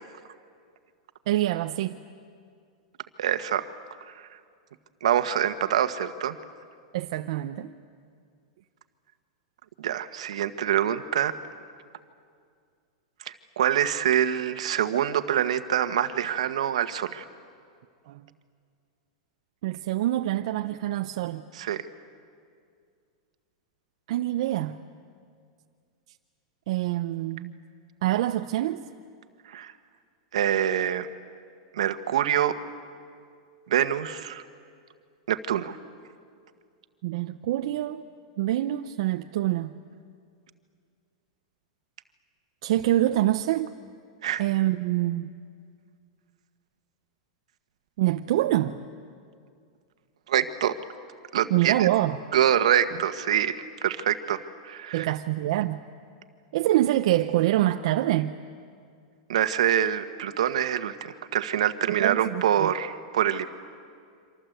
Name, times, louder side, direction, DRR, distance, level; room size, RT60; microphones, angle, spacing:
voice 1, 1.3-2.0 6.9-7.7 18.1-18.2 19.6-21.4 24.1-24.8 26.7-27.6 28.0-28.8 37.0-38.0 38.4-39.7 42.6-43.7 44.4-45.3 48.0-48.8 51.5-52.2 54.9-55.8 56.5-58.3 61.9-62.7, right 14 dB, 65° right, 6 dB, 0.8 m, -25 dB
voice 2, 3.2-3.7 5.0-6.4 9.8-11.3 13.2-17.2 21.5-21.8 29.5-29.7 30.3-31.1 31.7-32.5 33.7-34.4 35.3-35.8 44.2-44.4 50.3-50.7 51.3-51.9 52.3-55.1 59.3-63.5, right 10 dB, 85° right, 10 dB, 1.5 m, -25 dB
28.5 x 25.5 x 8.1 m, 2.2 s
supercardioid pair, 140°, 3 cm